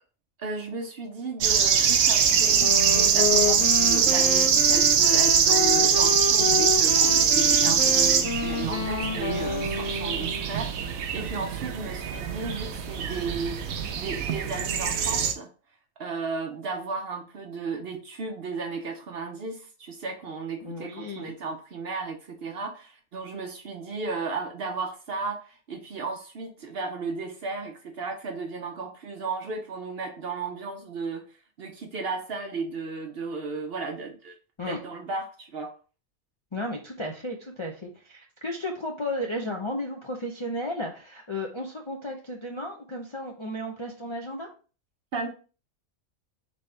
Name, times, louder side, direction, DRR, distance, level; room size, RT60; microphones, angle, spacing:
voice 1, 0.4-13.6 13.9-15.5 16.0-31.3 31.6-34.4 34.7-35.7 45.1-45.3, right 4 dB, 55° right, 4 dB, 0.7 m, -34 dB
sound 1, 1.4-15.3, right 7 dB, 80° right, 1.1 m, -23 dB
Wind instrument woodwind instrument, 2.6-10.6, left 5 dB, 75° left, 1.1 m, -29 dB
voice 2, 20.6-21.3 34.6-34.8 36.5-44.5, left 1 dB, 40° left, -1 dB, 0.4 m, -34 dB
4.1 x 3.4 x 3.2 m, 0.36 s
omnidirectional pair, 1.4 m